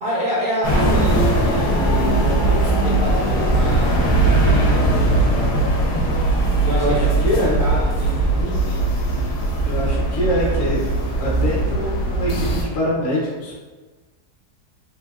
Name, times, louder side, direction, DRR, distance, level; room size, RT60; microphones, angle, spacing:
voice 1, 0.0-5.7 6.6-8.8, right 1 dB, 70° right, -6 dB, 0.5 m, -28 dB
sound 1, 0.6-12.6, right 2 dB, 85° left, 1.2 m, -19 dB
voice 2, 7.2-7.6 9.7-10.9 11.2-13.6, left 1 dB, 50° left, -4 dB, 0.9 m, -23 dB
3.4 x 2.6 x 2.4 m, 1.3 s
omnidirectional pair, 1.7 m